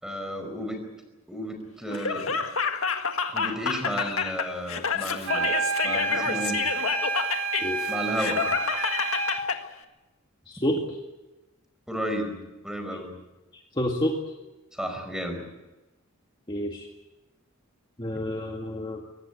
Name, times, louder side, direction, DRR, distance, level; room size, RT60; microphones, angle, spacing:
voice 1, 0.0-0.8 1.3-2.4 3.3-6.6 7.9-8.5 11.9-12.4 12.6-13.1 14.7-15.5, equal, 5° right, 5 dB, 5.0 m, -33 dB
Laughter, 1.9-9.6, left 6 dB, 75° left, 1.8 m, -29 dB
sound 1, 5.2-9.5, right 4 dB, 70° right, 2.5 m, -29 dB
voice 2, 10.5-10.8 13.5-14.2 16.5-16.9 18.0-19.0, equal, 25° left, 1 dB, 1.9 m, -29 dB
23.5 x 18.5 x 8.4 m, 1.1 s
head